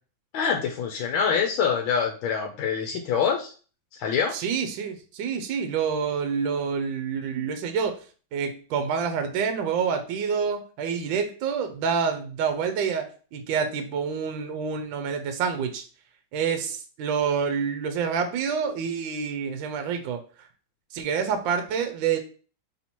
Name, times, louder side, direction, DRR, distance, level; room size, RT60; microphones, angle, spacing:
voice 1, 0.3-3.5 3.9-4.3, left 6 dB, 85° left, 2 dB, 1.4 m, -25 dB
voice 2, 4.3-8.0 8.3-15.8 16.3-20.2 20.9-22.2, right 6 dB, 75° right, 7 dB, 1.3 m, -27 dB
3.5 x 2.9 x 4.2 m, 0.38 s
omnidirectional pair, 2.2 m